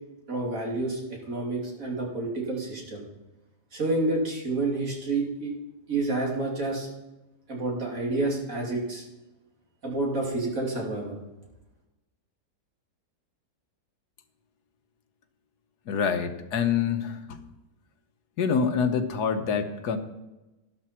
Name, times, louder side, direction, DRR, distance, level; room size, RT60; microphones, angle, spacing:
voice 1, 0.3-1.0 1.3-3.0 3.7-5.5 5.9-6.9 7.5-9.0 9.8-11.2, right 2 dB, 55° right, -1 dB, 3.2 m, -29 dB
voice 2, 15.9-17.4 18.4-20.0, left 6 dB, 80° left, 8 dB, 1.5 m, -26 dB
12.0 x 12.0 x 4.4 m, 1.0 s
omnidirectional pair, 1.7 m